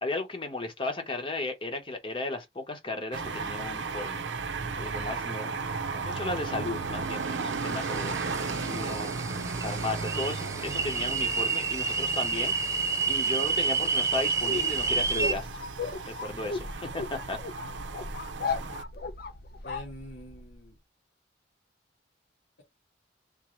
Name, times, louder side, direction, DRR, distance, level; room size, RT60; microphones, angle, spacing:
voice 1, 0.0-4.2 4.8-5.5 5.9-9.1 9.6-12.5 13.1-15.5 16.1-17.6, left 2 dB, 30° left, 0.9 m, -35 dB
sound 1, 3.1-18.8, right 4 dB, 85° right, 0.6 m, -35 dB
sound 2, 7.2-15.3, right 4 dB, 15° right, 0.4 m, -30 dB
sound 3, 14.3-20.5, left 3 dB, 55° left, 0.6 m, -36 dB
voice 2, 19.6-20.8, equal, 85° left, 1.7 m, -46 dB
3.7 x 2.6 x 3.1 m
head